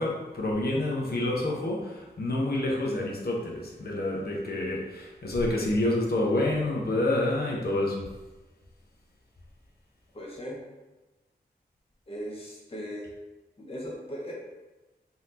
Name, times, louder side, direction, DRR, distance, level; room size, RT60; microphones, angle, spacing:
voice 1, 0.0-8.1, left 1 dB, 65° left, -3 dB, 0.9 m, -28 dB
voice 2, 10.1-10.6 12.1-13.1 13.6-14.3, equal, 35° left, -2 dB, 0.8 m, -38 dB
4.1 x 2.8 x 3.8 m, 1.1 s
wide cardioid pair, 80°, 18 cm